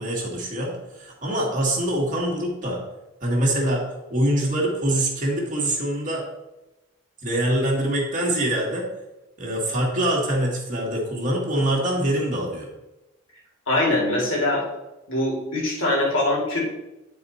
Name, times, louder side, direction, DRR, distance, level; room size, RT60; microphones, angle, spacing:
voice 1, 0.0-2.8 3.2-3.8 4.1-6.2 7.2-8.9 9.4-12.7, right 1 dB, 40° right, -1 dB, 1.7 m, -24 dB
voice 2, 13.7-14.6 15.1-16.6, left 1 dB, 70° left, -3 dB, 2.5 m, -22 dB
9.6 x 4.4 x 4.1 m, 0.99 s
head